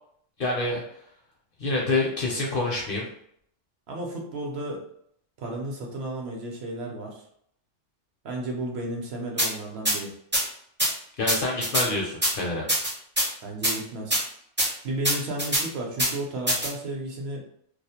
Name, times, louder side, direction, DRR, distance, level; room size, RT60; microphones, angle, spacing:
voice 1, 0.4-0.8 1.6-3.1 11.2-12.7, left 2 dB, 60° left, -1 dB, 0.6 m, -27 dB
voice 2, 3.9-4.8 5.4-7.2 8.2-10.1 13.4-14.2 14.8-17.4, right 1 dB, 65° right, 0 dB, 0.8 m, -33 dB
sound 1, 9.4-9.5 9.9-10.0 10.3-10.4 10.8-10.9 11.3-11.9 12.2-12.3 12.7-13.3 13.6-13.7 14.1-14.2 14.6-14.7 15.0-15.6 16.0-16.1 16.5-16.7, right 1 dB, 15° right, 0.4 m, -23 dB
2.3 x 2.0 x 2.7 m, 0.67 s
omnidirectional pair, 1.2 m